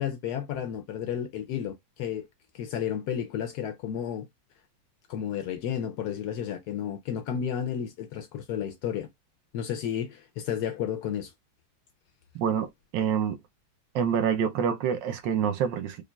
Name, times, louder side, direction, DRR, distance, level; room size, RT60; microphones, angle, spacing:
voice 1, 0.0-2.3 2.5-4.3 5.1-9.1 9.5-11.3, left 9 dB, 75° left, 0.9 m, -32 dB
voice 2, 12.3-12.7 12.9-13.4 13.9-16.0, right 8 dB, 75° right, 1.3 m, -26 dB
5.0 x 2.4 x 2.3 m
omnidirectional pair, 2.2 m